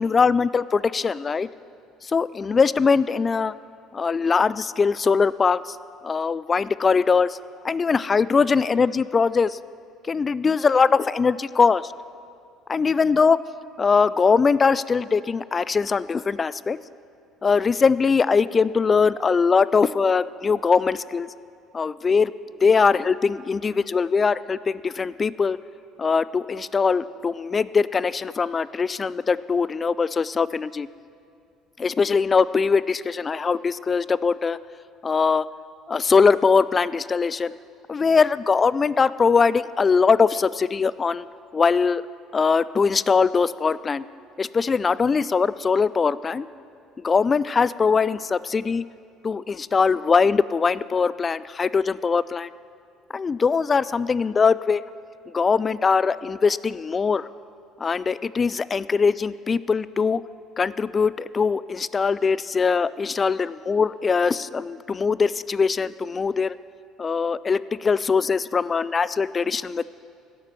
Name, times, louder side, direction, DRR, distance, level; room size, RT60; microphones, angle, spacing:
voice 1, 0.0-1.5 2.0-3.5 3.9-5.8 6.0-7.4 7.6-9.6 10.1-11.9 12.7-13.4 13.8-16.8 17.4-21.3 21.7-22.3 22.6-25.6 26.0-30.9 31.8-34.6 35.0-35.5 35.9-37.5 37.9-41.3 41.5-42.0 42.3-44.0 44.4-46.5 47.0-48.8 49.2-52.5 53.1-54.8 55.3-57.3 57.8-60.2 60.6-66.6 67.0-69.8, left 5 dB, 30° left, 18 dB, 0.3 m, -21 dB
16.5 x 7.4 x 6.8 m, 2.4 s
hypercardioid pair, 60°, 0 cm